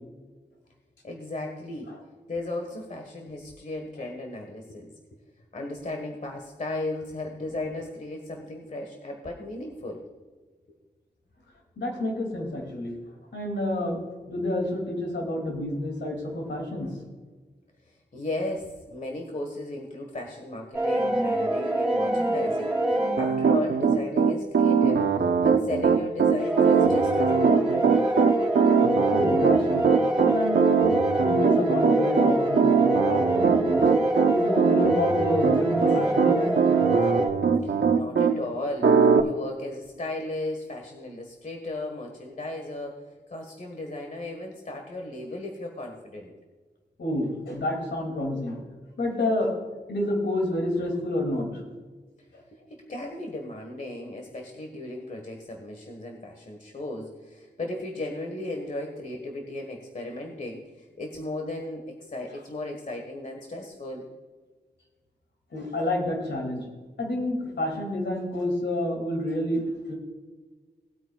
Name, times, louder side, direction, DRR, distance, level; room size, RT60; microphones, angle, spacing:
voice 1, 1.0-1.9 2.3-4.9 5.5-10.0 17.9-25.1 25.4-27.9 37.6-38.9 39.2-43.0 43.3-46.3 52.9-64.1, left 2 dB, 45° left, 2 dB, 1.4 m, -35 dB
voice 2, 11.8-12.9 13.3-14.0 14.3-16.9 29.1-30.8 31.2-32.6 32.9-33.9 34.3-36.7 47.0-48.6 49.0-49.5 49.9-51.6 65.5-66.6 67.0-69.6 69.9-70.0, left 1 dB, 85° left, 1 dB, 2.5 m, -29 dB
sound 1, 20.7-23.6 26.4-37.3, right 1 dB, 5° right, 3.7 m, -25 dB
Piano, 23.2-38.3 38.8-39.2, right 6 dB, 85° right, 0.8 m, -21 dB
19.0 x 8.9 x 2.3 m, 1.4 s
wide cardioid pair, 120°, 18 cm